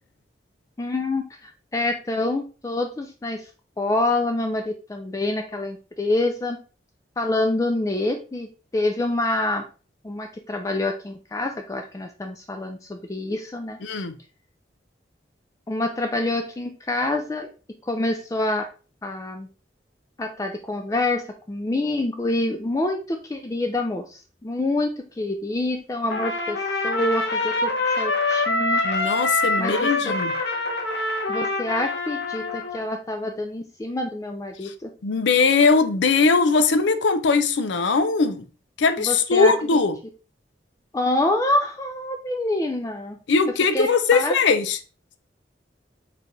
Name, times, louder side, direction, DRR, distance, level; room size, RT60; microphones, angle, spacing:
voice 1, 0.8-3.5 3.8-6.6 7.2-9.7 10.0-13.8 15.7-17.5 17.9-18.7 19.0-19.5 20.2-21.2 21.5-27.7 28.0-28.8 29.6-30.2 31.3-34.9 39.0-39.8 40.9-43.2 43.7-44.4, left 2 dB, 20° left, 0.3 m, -26 dB
voice 2, 13.8-14.2 28.8-30.3 34.6-34.7 35.0-38.4 38.8-40.0 43.3-44.8, left 4 dB, 85° left, 0.5 m, -20 dB
Trumpet, 26.1-32.8, left 2 dB, 65° left, 0.8 m, -25 dB
4.5 x 3.3 x 2.5 m
head